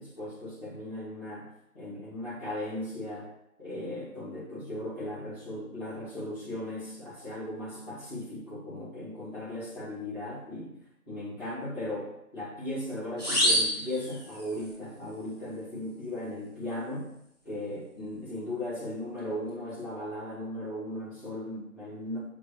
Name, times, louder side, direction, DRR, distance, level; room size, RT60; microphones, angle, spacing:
voice 1, 0.0-1.5 1.7-3.3 3.6-10.7 11.1-17.1 17.4-22.2, left 1 dB, 15° left, -16 dB, 1.7 m, -37 dB
sound 1, 13.2-14.7, equal, 5° right, 2.4 m, -27 dB
8.0 x 4.3 x 3.0 m, 0.80 s
figure-of-eight pair, 175°, 44 cm